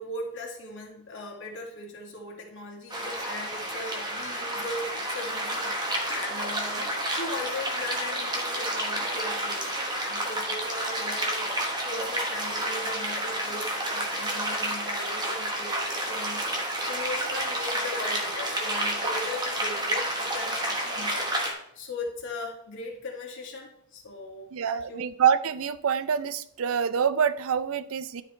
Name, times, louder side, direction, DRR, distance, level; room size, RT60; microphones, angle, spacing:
voice 1, 0.0-11.5 11.8-21.3 21.7-25.0, left 2 dB, 55° left, -2 dB, 2.2 m, -38 dB
sound 1, 2.9-21.5, right 1 dB, 20° right, 1.3 m, -30 dB
voice 2, 24.5-28.2, right 7 dB, 70° right, 14 dB, 0.5 m, -26 dB
12.5 x 5.0 x 3.2 m, 0.76 s
head